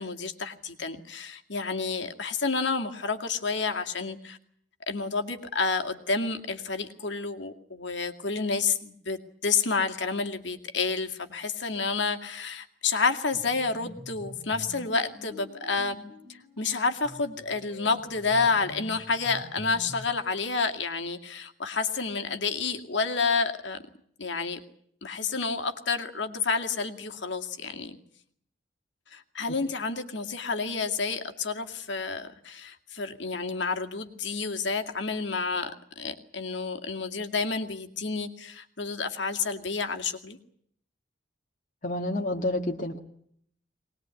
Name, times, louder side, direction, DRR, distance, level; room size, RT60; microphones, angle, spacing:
voice 1, 0.0-4.4 4.9-16.0 16.3-23.8 24.2-24.6 25.0-28.0 29.1-35.7 36.0-40.4, left 4 dB, 70° left, 5 dB, 2.3 m, -29 dB
sound 1, 13.3-20.2, left 2 dB, 15° right, 6.7 m, -46 dB
voice 2, 41.8-43.0, left 1 dB, 40° left, 1 dB, 1.7 m, -29 dB
23.5 x 20.0 x 9.7 m, 0.67 s
head